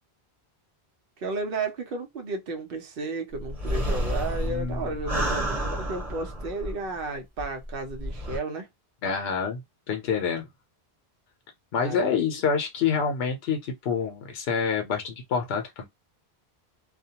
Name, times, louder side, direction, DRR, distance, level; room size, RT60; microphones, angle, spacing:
voice 1, 1.2-8.7 11.8-12.4, right 3 dB, 65° right, 0.8 m, -33 dB
sound 1, 3.4-7.0 7.4-7.5 7.9-8.4, equal, 35° right, 1.0 m, -30 dB
voice 2, 4.4-4.9 9.0-9.6 9.9-10.5 11.7-15.9, left 6 dB, 75° left, 0.9 m, -27 dB
2.3 x 2.2 x 2.7 m
omnidirectional pair, 1.1 m